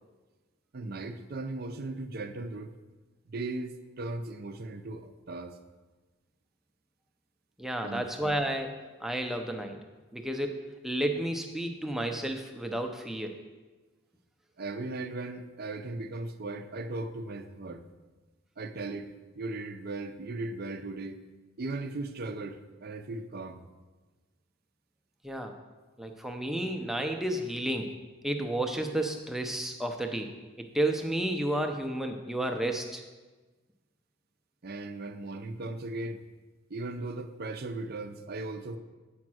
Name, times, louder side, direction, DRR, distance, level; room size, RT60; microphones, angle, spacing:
voice 1, 0.7-2.7 3.3-5.6 7.8-8.1 14.6-17.8 18.6-21.2 21.6-23.6 34.6-36.2 36.7-38.8, right 2 dB, 45° right, 8 dB, 0.5 m, -37 dB
voice 2, 7.6-9.8 10.1-13.4 25.2-25.6 26.0-28.0 28.2-33.0, right 1 dB, ahead, 4 dB, 0.6 m, -32 dB
8.5 x 5.2 x 6.2 m, 1.3 s
head